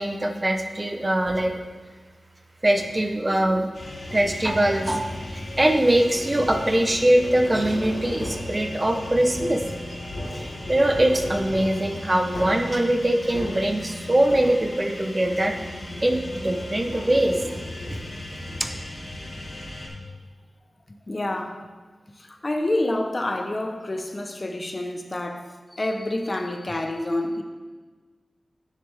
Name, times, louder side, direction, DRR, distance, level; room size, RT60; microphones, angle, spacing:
voice 1, 0.0-1.5 2.6-3.7 4.1-9.6 10.3-15.5 16.0-17.3 18.6-18.7, right 1 dB, 25° right, 4 dB, 0.8 m, -22 dB
sound 1, 1.3-1.8 2.8-3.2 4.1-4.7 6.4-14.9 15.2-18.4, left 1 dB, 85° left, 1.3 m, -38 dB
sound 2, 3.7-19.9, left 1 dB, 50° left, 1.8 m, -37 dB
voice 2, 20.9-21.6 22.2-27.4, left 1 dB, 35° left, 5 dB, 0.8 m, -28 dB
9.4 x 6.9 x 3.5 m, 1.4 s
wide cardioid pair, 80°, 0 cm